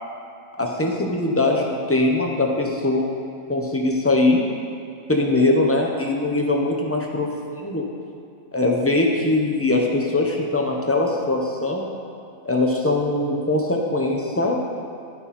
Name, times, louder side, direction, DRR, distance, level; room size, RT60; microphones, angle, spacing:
voice 1, 0.5-3.1 3.5-4.4 5.1-7.9 8.5-11.9 12.4-14.6, left 2 dB, 15° left, -1 dB, 0.6 m, -21 dB
13.0 x 5.6 x 4.3 m, 2.6 s
omnidirectional pair, 1.7 m